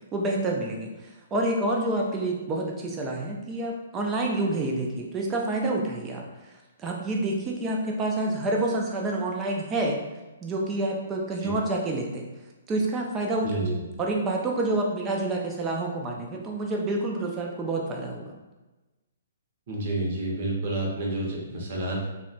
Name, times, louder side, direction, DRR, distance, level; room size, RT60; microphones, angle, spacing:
voice 1, 0.1-6.2 6.8-10.0 10.4-12.2 12.7-18.3, right 2 dB, 15° right, 0 dB, 0.3 m, -28 dB
voice 2, 19.7-22.1, right 2 dB, 40° right, -3 dB, 0.7 m, -29 dB
2.7 x 2.1 x 2.6 m, 1.1 s
hypercardioid pair, 165°, 0 cm